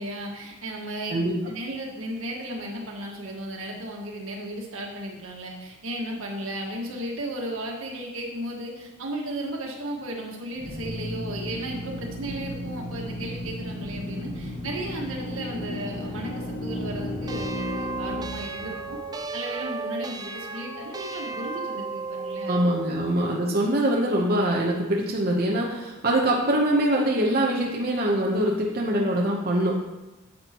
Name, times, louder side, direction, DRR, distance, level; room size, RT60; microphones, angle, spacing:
voice 1, 0.0-1.2 1.5-19.0 19.3-22.5, right 1 dB, 85° right, -1 dB, 1.6 m, -35 dB
Drill, 10.5-19.1, left 1 dB, 85° left, 2.7 m, -34 dB
sound 1, 17.3-23.0, right 4 dB, 20° right, 0.4 m, -34 dB
voice 2, 22.5-29.7, right 1 dB, 45° right, -2 dB, 0.9 m, -23 dB
10.5 x 7.1 x 2.9 m, 1.1 s
head